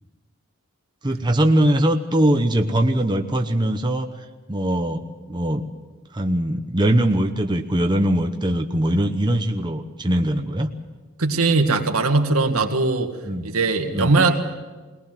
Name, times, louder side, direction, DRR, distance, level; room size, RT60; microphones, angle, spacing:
voice 1, 1.0-4.1 4.5-5.7 6.1-10.7 12.5-12.7 13.2-13.5 13.9-14.2, right 1 dB, 20° right, 4 dB, 0.9 m, -21 dB
voice 2, 11.2-13.1 13.4-14.4, right 3 dB, 85° right, 5 dB, 1.8 m, -20 dB
21.0 x 18.5 x 7.6 m, 1.3 s
head